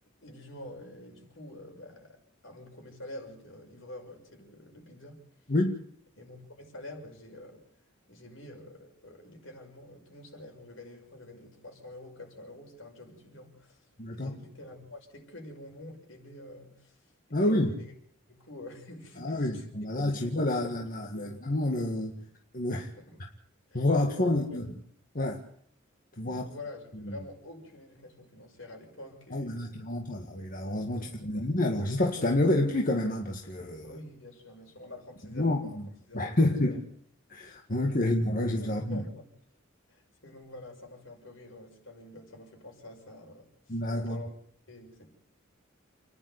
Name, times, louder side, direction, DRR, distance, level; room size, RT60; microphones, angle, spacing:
voice 1, 0.2-5.2 6.2-7.6 8.1-17.9 18.3-19.6 20.1-20.7 21.1-21.4 23.0-23.2 23.7-24.6 26.2-29.8 31.0-31.5 33.8-35.8 36.1-36.8 37.8-38.1 38.6-39.3 39.9-44.3 44.7-45.1, left 1 dB, 70° left, 6.4 m, -47 dB
voice 2, 5.5-5.8 14.0-14.3 17.3-17.8 19.2-22.2 22.5-22.9 23.7-24.7 25.1-25.4 26.2-26.4 26.9-27.2 29.3-34.0 35.3-35.9 36.1-36.8 37.3-39.0 43.7-44.2, left 1 dB, 45° left, 1.9 m, -28 dB
29.0 x 11.0 x 8.1 m
head